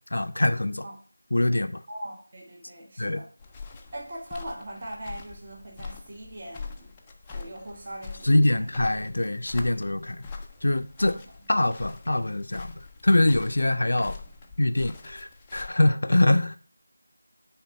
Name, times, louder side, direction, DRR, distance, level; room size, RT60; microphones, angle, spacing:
voice 1, 0.1-0.8 1.3-1.8 3.0-3.2 8.2-10.2 10.6-11.1 11.5-12.7 13.0-14.2 14.6-16.6, left 1 dB, 60° left, 0.5 m, -23 dB
voice 2, 1.9-3.3 3.9-6.9 7.3-8.7 11.0-11.3, right 1 dB, 25° right, 1.2 m, -40 dB
sound 1, 3.4-15.7, left 4 dB, 10° left, 0.4 m, -43 dB
8.6 x 3.7 x 5.6 m
figure-of-eight pair, 175°, 0 cm